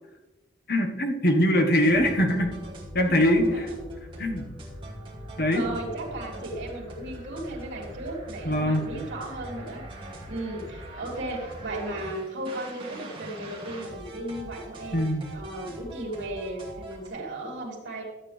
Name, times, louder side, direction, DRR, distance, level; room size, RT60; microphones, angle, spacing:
voice 1, 0.7-2.5 2.9-3.7 4.2-4.5 5.4-5.6 8.4-8.8 14.9-15.2, equal, 50° left, 3 dB, 1.3 m, -22 dB
sound 1, 1.8-17.1, right 1 dB, 25° right, 2.4 m, -42 dB
voice 2, 3.0-3.8 4.9-5.0 5.4-15.0 15.3-18.0, right 1 dB, 85° right, -2 dB, 3.0 m, -36 dB
13.0 x 8.4 x 3.4 m, 1.2 s
head